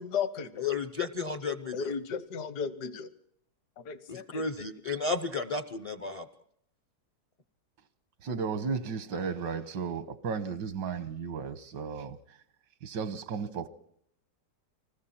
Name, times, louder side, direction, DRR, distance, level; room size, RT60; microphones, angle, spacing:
voice 1, 0.0-0.7 1.7-3.1 3.8-4.4, left 6 dB, 65° left, 1.6 m, -35 dB
voice 2, 0.6-1.9 4.1-6.3, left 4 dB, 50° left, 0.4 m, -33 dB
voice 3, 8.2-12.2 12.8-13.7, right 5 dB, 85° right, 1.7 m, -34 dB
29.5 x 20.5 x 4.3 m
omnidirectional pair, 1.9 m